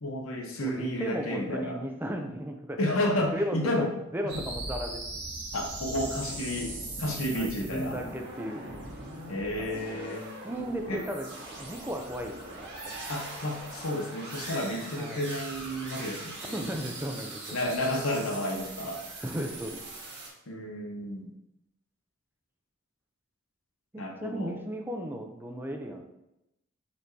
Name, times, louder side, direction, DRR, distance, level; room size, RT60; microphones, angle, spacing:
voice 1, 0.0-1.8 2.8-3.9 4.2-4.3 5.5-8.0 9.3-10.3 10.9-11.0 13.1-16.6 17.5-19.0 20.5-21.3 24.0-24.6, left 1 dB, 80° left, 1 dB, 0.8 m, -31 dB
voice 2, 0.6-2.9 3.2-5.0 7.3-9.0 9.3-11.3 11.6-13.0 15.0-15.3 16.5-17.6 19.2-19.8 23.9-26.0, equal, 10° right, 4 dB, 0.4 m, -36 dB
sound 1, 4.3-20.3, right 2 dB, 55° right, 1.2 m, -40 dB
4.6 x 4.3 x 2.7 m, 0.89 s
head